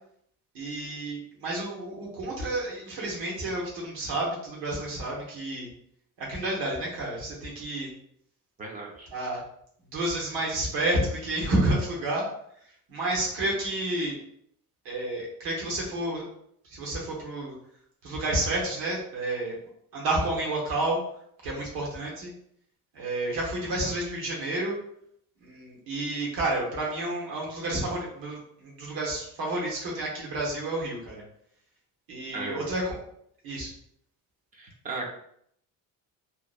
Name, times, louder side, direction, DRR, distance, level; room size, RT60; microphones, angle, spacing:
voice 1, 0.5-5.7 6.2-7.9 9.1-9.4 9.9-12.3 12.9-14.2 14.8-16.2 16.7-17.5 18.0-19.6 19.9-21.0 21.4-22.3 22.9-24.7 25.4-31.2 32.1-33.0 33.4-33.7, right 1 dB, 80° right, -3 dB, 1.0 m, -30 dB
voice 2, 8.6-9.1 32.3-32.7 34.5-35.1, right 3 dB, 25° right, 0 dB, 0.4 m, -36 dB
2.8 x 2.1 x 2.4 m, 0.69 s
cardioid pair, 160°, 35 cm